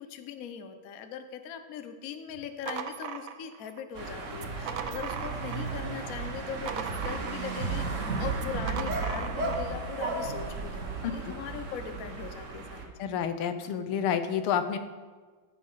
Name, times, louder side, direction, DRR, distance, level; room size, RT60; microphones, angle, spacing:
voice 1, 0.0-12.8, left 7 dB, 60° left, 8 dB, 0.9 m, -40 dB
sound 1, 2.3-3.8 4.3-5.8 6.1-7.7 8.3-9.7, right 8 dB, 85° right, 0.7 m, -38 dB
sound 2, 4.0-12.9, right 3 dB, 45° right, 1.2 m, -34 dB
voice 2, 13.0-14.8, left 8 dB, 85° left, 9 dB, 1.7 m, -29 dB
13.5 x 5.2 x 5.6 m, 1.4 s
omnidirectional pair, 2.3 m